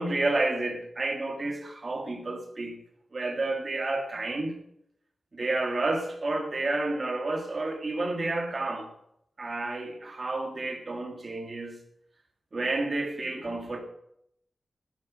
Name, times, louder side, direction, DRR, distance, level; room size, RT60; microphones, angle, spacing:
voice 1, 0.0-2.8 3.1-4.6 5.3-8.9 9.4-11.8 12.5-13.8, right 2 dB, 35° right, 2.0 m, -30 dB
9.5 x 8.3 x 8.6 m
wide cardioid pair, 165°, 0 cm